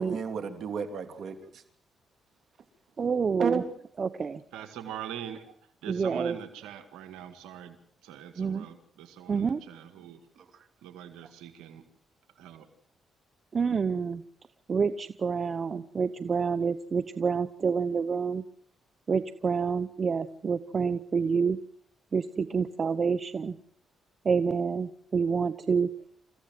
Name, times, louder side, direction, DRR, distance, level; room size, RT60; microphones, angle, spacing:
voice 1, 0.0-1.6 3.4-3.6 10.4-10.6, right 6 dB, 65° right, 7 dB, 3.3 m, -32 dB
voice 2, 3.0-3.6 4.0-4.4 5.9-6.4 8.4-8.7 9.3-9.6 13.5-14.2 14.7-18.4 19.1-21.6 22.1-23.6 24.2-25.9, right 5 dB, 45° right, 13 dB, 0.9 m, -28 dB
voice 3, 4.5-5.5 5.8-7.8 8.0-10.2 10.8-11.8 12.4-12.7, right 10 dB, 85° right, 8 dB, 1.9 m, -42 dB
28.0 x 15.0 x 7.7 m, 0.68 s
supercardioid pair, 65°, 0 cm